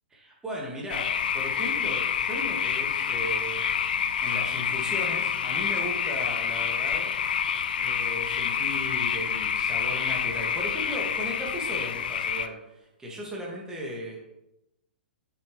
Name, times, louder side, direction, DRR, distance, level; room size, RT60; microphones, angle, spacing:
voice 1, 0.1-7.1 7.8-14.2, equal, 10° right, -3 dB, 2.2 m, -37 dB
sound 1, 0.9-12.5, left 7 dB, 60° left, 0.5 m, -28 dB
7.9 x 6.3 x 3.4 m, 0.88 s
figure-of-eight pair, 115°, 6 cm